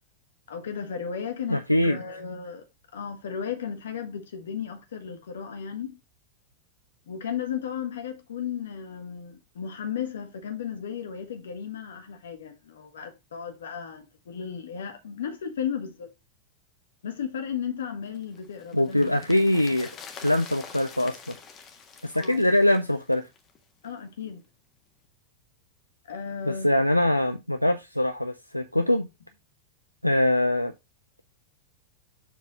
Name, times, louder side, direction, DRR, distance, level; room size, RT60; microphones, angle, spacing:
voice 1, 0.5-2.7 2.9-6.0 7.1-16.1 17.0-19.2 19.7-19.8 22.1-22.4 23.8-24.4 26.1-26.7, left 7 dB, 65° left, 1.8 m, -35 dB
voice 2, 1.5-2.0 18.7-19.9 20.2-21.3 22.0-23.2 26.5-29.1 30.0-30.7, left 1 dB, 90° left, 0.5 m, -23 dB
sound 1, 18.1-23.6 23.8-23.9, left 6 dB, 30° left, 1.5 m, -46 dB
7.3 x 4.0 x 5.2 m
figure-of-eight pair, 90°, 0 cm